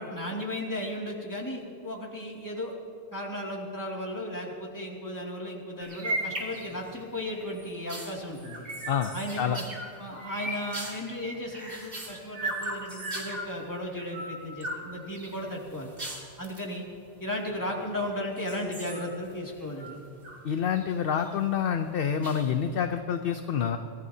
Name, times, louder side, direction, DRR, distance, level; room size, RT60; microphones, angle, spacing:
voice 1, 0.0-2.7 3.1-8.6 9.1-9.6 10.0-15.9 16.4-16.9 17.2-20.0, left 1 dB, 15° left, -3 dB, 2.4 m, -35 dB
sound 1, 5.8-7.0 7.4-13.5 13.9-14.8 15.1-16.7 17.5-18.0 18.4-20.4 20.7-21.3 22.2-22.8, right 1 dB, 50° right, 2.7 m, -37 dB
voice 2, 8.9-9.6 20.4-23.8, left 8 dB, 60° left, 7 dB, 0.8 m, -28 dB
24.5 x 16.5 x 2.8 m, 2.6 s
omnidirectional pair, 1.2 m